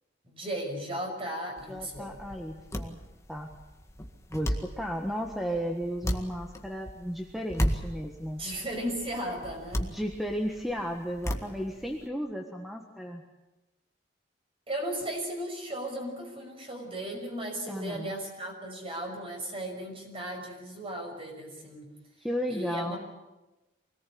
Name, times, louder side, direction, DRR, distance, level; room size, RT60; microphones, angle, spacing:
voice 1, 0.2-2.1 8.3-9.9 14.7-21.9 22.5-23.0, right 1 dB, 30° right, 2 dB, 6.0 m, -36 dB
sound 1, 1.6-12.1, equal, 15° left, 1.9 m, -36 dB
voice 2, 1.7-3.0 3.3-3.5 4.3-8.4 9.9-13.2 17.7-18.1 22.2-23.0, equal, ahead, 2 dB, 1.5 m, -34 dB
25.0 x 18.5 x 8.6 m, 1.1 s
head